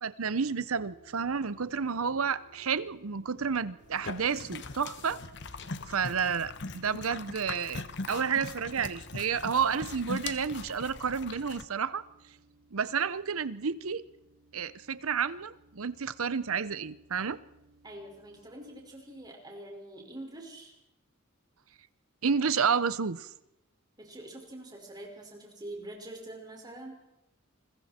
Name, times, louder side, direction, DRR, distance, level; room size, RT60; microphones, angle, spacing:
voice 1, 0.0-5.2 5.9-7.8 8.1-12.0 12.7-14.1 14.5-17.4 22.2-23.3, right 6 dB, 85° right, 16 dB, 0.8 m, -30 dB
sound 1, 0.7-19.2, right 2 dB, 55° right, 5.6 m, -61 dB
sound 2, 3.8-11.6, left 3 dB, 55° left, 1.2 m, -41 dB
voice 2, 17.8-20.7 24.0-27.0, right 1 dB, 20° right, 0 dB, 5.3 m, -45 dB
29.0 x 21.5 x 4.4 m, 0.86 s
head